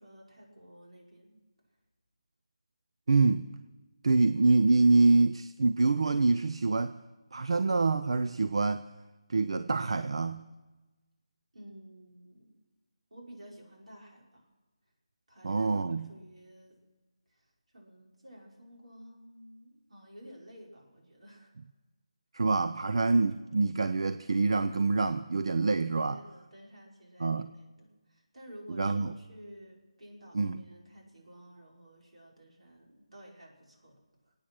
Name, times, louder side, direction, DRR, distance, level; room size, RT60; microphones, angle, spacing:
voice 1, 0.0-1.4 11.5-12.5 13.1-14.5 15.3-16.8 17.3-21.5 26.1-34.3, equal, 80° right, -2 dB, 5.2 m, -52 dB
voice 2, 3.1-3.5 4.0-7.0 7.3-8.9 9.3-10.5 15.4-16.1 22.3-26.2 27.2-27.5 28.7-29.1 30.3-30.6, right 3 dB, 60° right, 11 dB, 0.5 m, -26 dB
26.0 x 8.8 x 6.1 m, 1.2 s
figure-of-eight pair, 170°, 3 cm